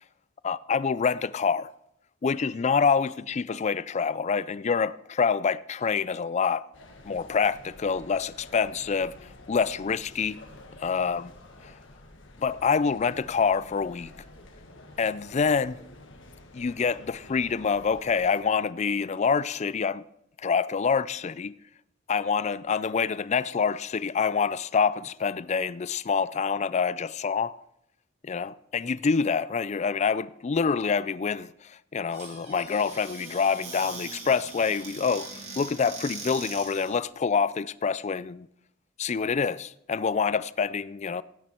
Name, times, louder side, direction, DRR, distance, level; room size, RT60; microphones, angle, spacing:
voice 1, 0.4-1.7 2.2-6.7 7.0-9.1 9.5-10.4 10.8-11.3 11.6-11.7 12.4-14.1 15.0-15.8 16.5-20.0 20.4-21.5 22.1-27.6 28.2-38.5 39.0-41.2, left 5 dB, 35° left, 0.4 m, -26 dB
sound 1, 6.7-18.4, left 2 dB, 75° left, 1.7 m, -50 dB
Squeak / Cupboard open or close, 32.1-37.0, right 3 dB, 35° right, 3.0 m, -41 dB
16.5 x 9.2 x 4.5 m
head